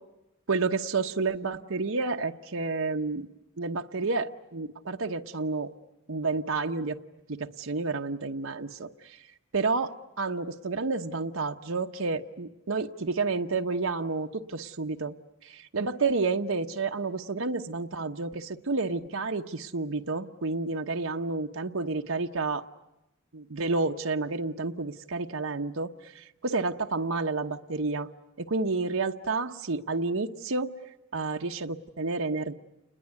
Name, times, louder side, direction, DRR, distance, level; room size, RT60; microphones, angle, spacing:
voice 1, 0.5-3.3 3.6-5.7 6.1-7.0 7.3-9.2 9.5-15.1 15.4-22.7 23.3-28.1 28.4-30.7 31.1-32.5, right 3 dB, 75° right, 4 dB, 1.0 m, -30 dB
29.0 x 21.0 x 9.4 m, 0.94 s
head